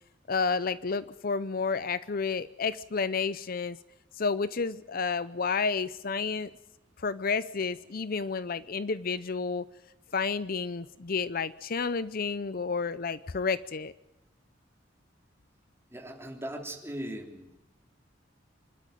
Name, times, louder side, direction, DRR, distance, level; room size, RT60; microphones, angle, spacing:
voice 1, 0.3-3.8 4.2-6.5 7.0-9.7 10.1-13.9, left 5 dB, 50° left, 16 dB, 0.7 m, -30 dB
voice 2, 15.9-17.5, right 1 dB, 15° right, 3 dB, 3.3 m, -39 dB
26.0 x 12.5 x 9.2 m, 0.97 s
head